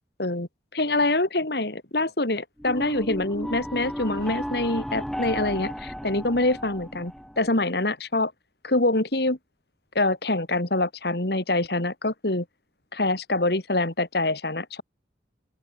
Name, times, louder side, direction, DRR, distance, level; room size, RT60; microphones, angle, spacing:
voice 1, 0.2-8.3 8.6-9.4 9.9-12.4 12.9-14.8, left 2 dB, 60° left, 2.4 m, -25 dB
sound 1, 2.6-7.6, equal, ahead, 1.6 m, -34 dB
open air
head